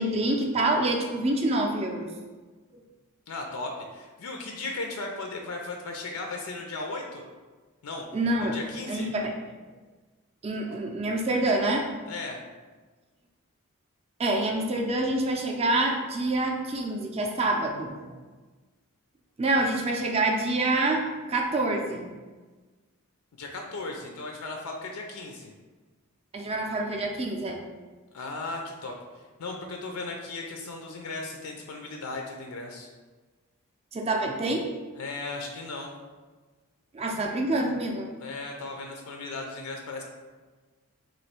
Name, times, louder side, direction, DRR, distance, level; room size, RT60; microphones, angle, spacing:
voice 1, 0.0-2.1 8.1-8.6 8.9-9.3 10.4-11.9 14.2-18.2 19.4-22.1 26.3-27.6 33.9-34.7 36.9-38.1, right 2 dB, 25° right, 2 dB, 0.4 m, -26 dB
voice 2, 3.3-7.2 7.8-8.0 8.4-9.1 12.1-12.4 23.4-25.5 28.1-32.9 35.0-35.9 38.2-40.0, left 3 dB, 80° left, 2 dB, 0.5 m, -36 dB
3.1 x 2.6 x 4.3 m, 1.3 s
head